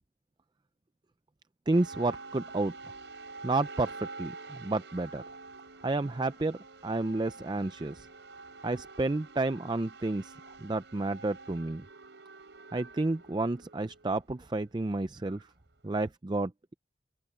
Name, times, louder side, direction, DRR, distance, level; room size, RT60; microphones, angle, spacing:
voice 1, 1.7-2.7 3.4-5.2 5.8-8.1 8.6-10.3 10.6-11.8 12.7-15.4 15.8-16.7, right 2 dB, 25° right, 0.4 m, -31 dB
sound 1, 1.7-16.0, right 3 dB, 85° right, 4.4 m, -48 dB
open air
head